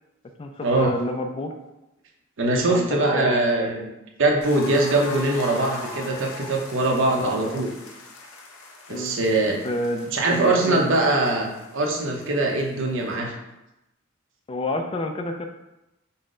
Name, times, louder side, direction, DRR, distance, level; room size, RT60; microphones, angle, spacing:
voice 1, 0.4-1.5 2.7-3.7 6.9-7.6 8.9-9.2 9.6-10.8 14.5-15.5, left 1 dB, 25° left, 5 dB, 0.3 m, -29 dB
voice 2, 2.4-3.9 4.2-7.7 8.9-9.6 10.1-13.3, right 2 dB, 60° right, 1 dB, 0.7 m, -22 dB
sound 1, 4.4-13.1, left 2 dB, 70° left, 0.7 m, -41 dB
5.6 x 2.1 x 3.7 m, 0.93 s
head